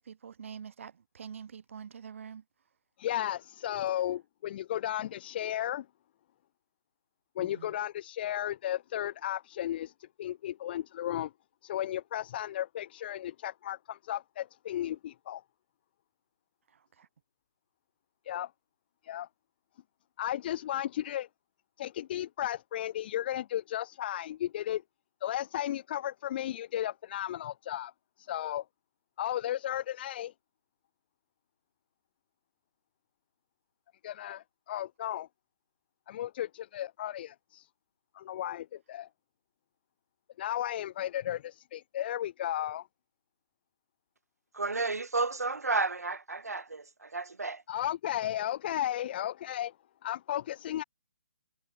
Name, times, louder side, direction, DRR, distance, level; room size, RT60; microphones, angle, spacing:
voice 1, 0.0-2.4 7.4-7.7 16.7-17.1, right 7 dB, 55° right, 5.7 m, -46 dB
voice 2, 3.0-5.8 7.3-11.3 11.6-15.4 18.2-18.5 19.0-19.3 20.2-21.3 21.8-24.8 25.2-27.9 28.2-28.6 29.2-30.3 34.0-35.3 36.1-37.7 38.1-39.1 40.4-42.9 47.7-49.7 50.0-50.8, left 12 dB, 40° left, 1.7 m, -34 dB
voice 3, 44.5-47.6, right 3 dB, 80° right, 2.4 m, -32 dB
figure-of-eight pair, 140°, 8 cm